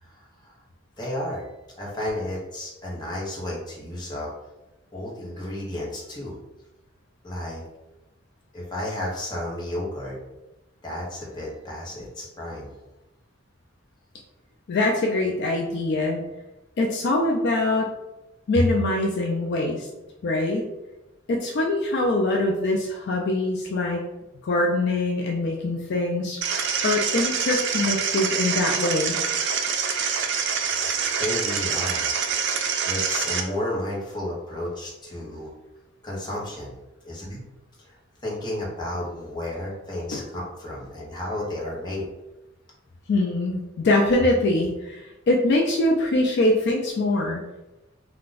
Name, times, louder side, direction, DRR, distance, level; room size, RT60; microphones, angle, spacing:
voice 1, 0.0-0.6 1.0-1.5 1.8-4.3 4.9-6.4 7.2-7.6 8.5-10.2 10.8-12.7 31.2-32.1 32.8-35.5 36.0-36.8 37.0-37.4 37.8-38.0 38.2-42.1, left 1 dB, 20° left, -5 dB, 0.9 m, -32 dB
voice 2, 14.7-16.2 16.8-17.9 18.5-19.9 20.2-20.7 21.3-24.0 24.4-26.4 26.8-29.2 40.1-40.2 43.1-47.4, left 2 dB, 55° left, 1 dB, 0.4 m, -23 dB
sound 1, 26.4-33.4, right 6 dB, 60° right, 0.4 m, -26 dB
2.4 x 2.2 x 3.8 m, 1.0 s
head